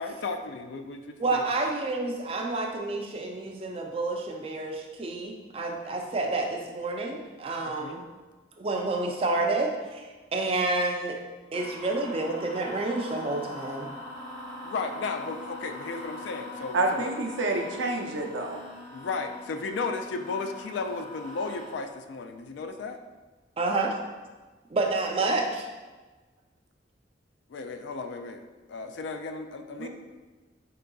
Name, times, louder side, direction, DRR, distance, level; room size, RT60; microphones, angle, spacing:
voice 1, 0.0-1.4 7.6-8.0 14.6-17.0 18.9-23.0 27.5-28.4 28.7-29.9, left 4 dB, 70° left, 7 dB, 0.3 m, -34 dB
voice 2, 1.2-8.0 8.6-11.2 11.5-13.9 23.6-24.0 24.7-25.7, right 2 dB, 30° right, 2 dB, 0.4 m, -29 dB
sound 1, 11.5-21.7, left 1 dB, 45° left, 0.8 m, -42 dB
voice 3, 16.7-18.6 29.8-29.9, right 2 dB, 75° right, 2 dB, 0.5 m, -28 dB
4.5 x 3.8 x 2.3 m, 1.3 s
head